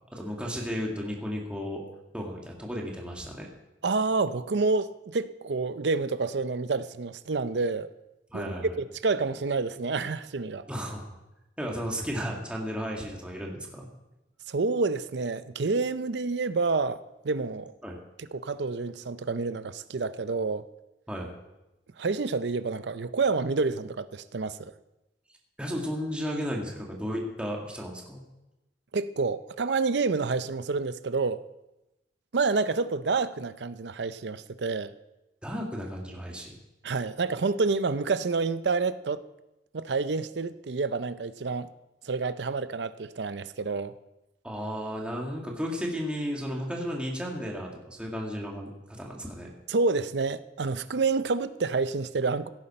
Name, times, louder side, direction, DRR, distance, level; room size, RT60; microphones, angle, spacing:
voice 1, 0.1-1.8 2.1-3.5 8.3-8.7 10.7-11.0 11.6-13.9 17.8-18.0 21.1-21.3 25.6-28.2 35.4-36.6 44.4-49.5, equal, 5° right, -2 dB, 2.1 m, -34 dB
voice 2, 3.8-7.9 8.3-10.6 14.5-17.7 18.2-20.6 22.0-24.7 28.9-31.4 32.3-34.9 36.8-39.2 39.7-41.7 42.0-43.9 49.7-52.5, right 4 dB, 75° right, 14 dB, 0.6 m, -28 dB
16.5 x 9.9 x 4.3 m, 0.96 s
head